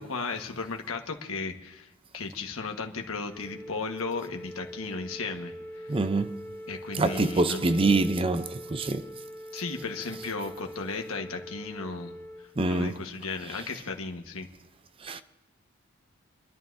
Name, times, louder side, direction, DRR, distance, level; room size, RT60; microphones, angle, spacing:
voice 1, 0.0-1.9 2.1-5.9 6.7-7.8 9.5-12.1 12.7-14.5, left 4 dB, 85° left, 1.4 m, -35 dB
Wind instrument woodwind instrument, 3.3-12.5, equal, 10° left, 1.6 m, -43 dB
voice 2, 5.9-6.4 6.9-9.1 10.1-10.3 12.6-13.0 13.5-13.7 15.0-15.2, right 2 dB, 25° right, 0.5 m, -26 dB
30.0 x 11.5 x 2.7 m
head